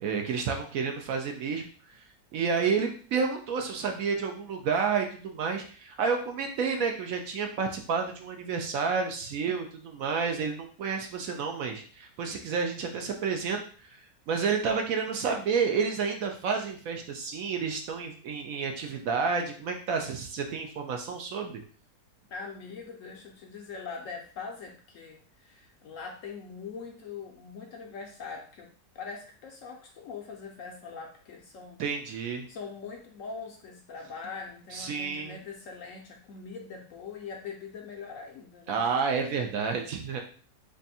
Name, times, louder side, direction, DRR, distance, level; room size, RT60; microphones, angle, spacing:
voice 1, 0.0-1.7 2.3-14.0 14.3-21.6 31.8-32.5 34.7-35.4 38.7-40.2, right 5 dB, 70° right, 4 dB, 0.9 m, -30 dB
voice 2, 22.3-28.7 28.9-31.8 32.5-38.8, left 5 dB, 65° left, 2 dB, 0.9 m, -42 dB
3.4 x 2.5 x 4.0 m, 0.42 s
omnidirectional pair, 1.7 m